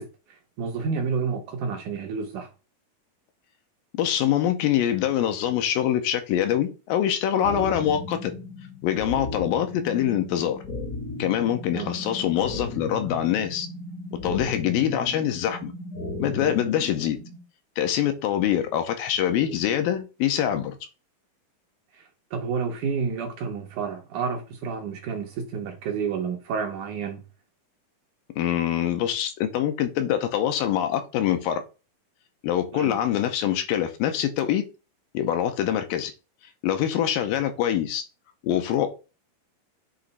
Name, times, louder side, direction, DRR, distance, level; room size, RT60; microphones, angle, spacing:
voice 1, 0.0-2.5 11.7-11.9 21.9-27.2 32.7-33.0, right 5 dB, 70° right, 2.0 m, -30 dB
voice 2, 4.0-8.3 8.8-10.6 11.2-13.7 14.2-15.7 16.2-17.2 17.8-20.8 28.4-31.6 32.4-34.6 35.1-36.1 36.6-38.0 38.4-38.9, left 10 dB, 80° left, 2.4 m, -24 dB
sound 1, 7.4-17.4, left 2 dB, 50° left, 1.0 m, -36 dB
7.7 x 3.1 x 4.1 m
omnidirectional pair, 4.2 m